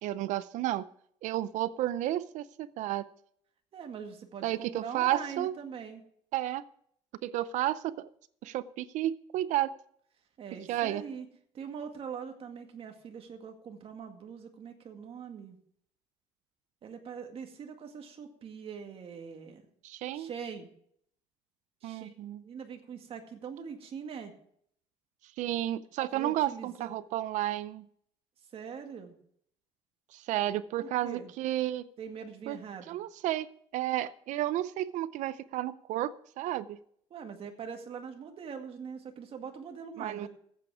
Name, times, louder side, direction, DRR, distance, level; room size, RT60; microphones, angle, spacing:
voice 1, 0.0-0.9 1.2-3.1 4.4-5.6 6.3-6.6 7.2-8.1 8.4-9.7 10.7-11.0 19.8-20.3 21.8-22.4 25.2-27.9 30.1-31.9 32.5-32.6 32.9-36.8 40.0-40.3, right 13 dB, 75° right, 16 dB, 0.5 m, -32 dB
voice 2, 3.7-6.0 10.4-11.3 11.5-15.6 16.8-19.6 20.1-20.7 21.8-22.1 22.4-24.3 26.1-26.9 28.5-29.1 30.8-31.3 32.0-33.0 37.1-40.3, right 6 dB, 45° right, 4 dB, 2.0 m, -42 dB
14.5 x 8.5 x 4.8 m, 0.66 s
cardioid pair, 130°, 13 cm